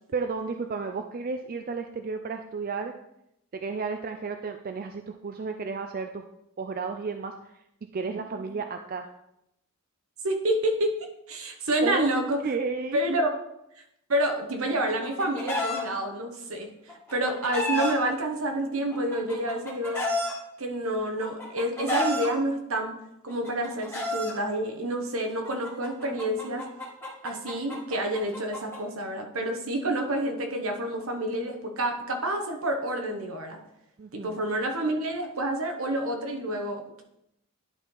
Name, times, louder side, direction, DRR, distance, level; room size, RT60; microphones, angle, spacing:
voice 1, 0.1-2.9 3.5-6.2 6.6-7.6 7.9-9.1 11.8-12.1 12.4-13.0 34.0-34.4, right 4 dB, 40° right, 6 dB, 0.4 m, -32 dB
voice 2, 10.2-11.0 11.3-12.4 12.9-13.4 14.1-20.0 20.6-22.9 23.2-26.7 27.2-33.6 34.1-37.0, right 1 dB, 75° right, 4 dB, 1.1 m, -28 dB
Chicken rooster, 14.7-15.8 16.9-17.9 18.9-20.3 21.2-22.3 23.3-24.3 25.4-28.8, left 1 dB, 10° left, 1.6 m, -31 dB
10.5 x 4.5 x 3.9 m, 0.82 s
head